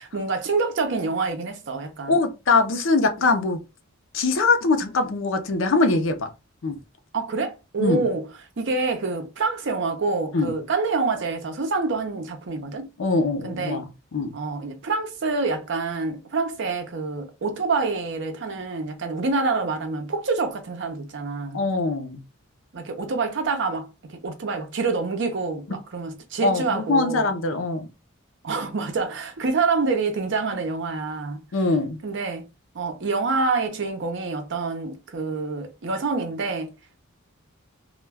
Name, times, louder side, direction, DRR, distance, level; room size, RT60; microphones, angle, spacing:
voice 1, 0.0-2.2 7.1-8.3 8.6-12.9 13.4-13.8 14.3-21.6 22.7-27.3 28.4-31.4 32.0-32.5 32.7-36.7, right 4 dB, 60° right, 0.6 m, -27 dB
voice 2, 2.1-3.6 4.1-6.3 6.6-6.8 7.8-8.0 10.3-10.5 13.0-14.4 21.5-22.2 26.4-27.9 31.5-32.0, left 3 dB, 65° left, 0.5 m, -22 dB
2.2 x 2.2 x 3.3 m
head